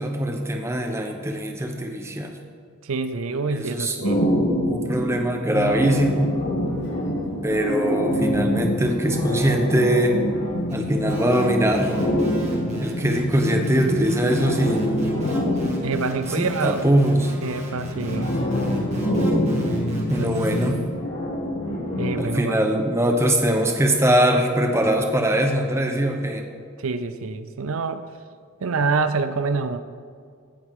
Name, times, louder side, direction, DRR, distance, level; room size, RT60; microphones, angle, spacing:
voice 1, 0.0-2.3 3.5-4.0 4.7-6.3 7.4-10.2 10.7-11.9 12.8-15.2 16.4-17.3 20.1-20.8 22.2-26.4, right 1 dB, 15° right, 4 dB, 0.8 m, -22 dB
voice 2, 2.8-4.3 15.8-16.9 17.4-18.3 20.2-20.3 22.0-22.8 26.8-28.0 28.6-29.8, right 4 dB, 80° right, 10 dB, 0.6 m, -26 dB
sound 1, 4.0-13.6 14.1-16.7 18.0-22.2, equal, 80° left, 2.4 m, -26 dB
sound 2, 5.5-21.0, left 1 dB, 50° left, 0.8 m, -32 dB
sound 3, 10.7-10.8 11.1-20.7, right 1 dB, 30° right, 2.1 m, -41 dB
16.0 x 7.9 x 3.7 m, 2.2 s
head